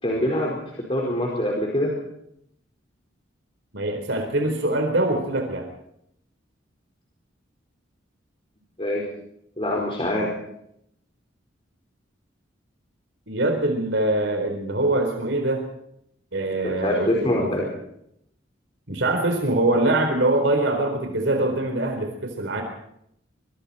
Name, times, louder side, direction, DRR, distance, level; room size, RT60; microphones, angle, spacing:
voice 1, 0.0-1.9 8.8-9.0 9.6-10.3 16.6-17.7, left 1 dB, 30° left, -1 dB, 4.7 m, -24 dB
voice 2, 3.7-5.7 13.3-15.6 16.3-17.5 18.9-22.6, right 2 dB, 70° right, 4 dB, 4.3 m, -23 dB
25.5 x 25.0 x 4.4 m, 0.74 s
head